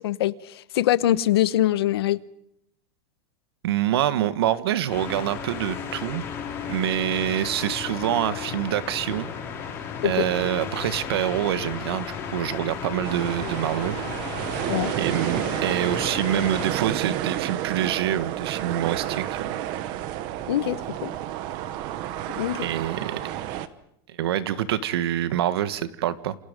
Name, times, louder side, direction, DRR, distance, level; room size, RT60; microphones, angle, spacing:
voice 1, 0.0-2.2 10.0-10.3 14.7-14.9 20.5-21.1 22.4-22.7, left 13 dB, 80° left, 1.1 m, -23 dB
voice 2, 3.6-6.2 6.7-9.3 10.0-14.0 15.0-19.6 22.6-23.2 24.1-26.4, right 11 dB, 75° right, 1.6 m, -26 dB
sound 1, 4.9-16.7, left 6 dB, 20° left, 5.0 m, -34 dB
sound 2, 13.0-23.7, right 12 dB, 35° right, 1.1 m, -30 dB
28.5 x 27.0 x 5.3 m
supercardioid pair, 175°, 13 cm